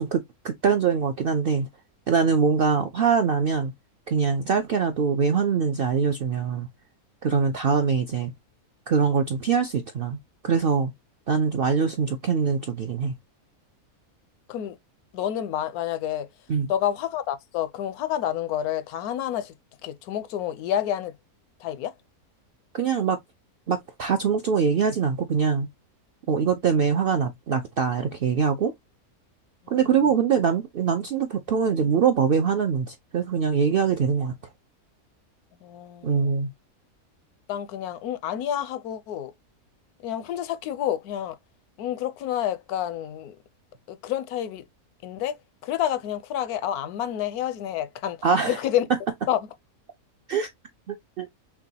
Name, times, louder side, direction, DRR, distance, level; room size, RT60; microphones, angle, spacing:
voice 1, 0.0-1.7 2.1-3.7 4.1-6.7 7.2-8.3 8.9-10.2 10.4-10.9 11.3-13.1 16.5-16.7 22.7-23.2 23.7-25.7 26.3-28.7 29.7-34.3 36.0-36.5 48.2-48.6 50.3-50.5 50.9-51.3, right 6 dB, 70° right, 0.5 m, -23 dB
voice 2, 15.1-16.3 16.7-19.5 19.8-21.1 21.6-21.9 29.8-29.9 35.6-36.3 37.5-39.3 40.0-41.4 41.8-43.4 43.9-44.6 45.0-45.4 45.6-48.2 48.5-48.9 49.3-49.4, left 11 dB, 85° left, 1.1 m, -29 dB
6.0 x 2.2 x 2.7 m
omnidirectional pair, 1.6 m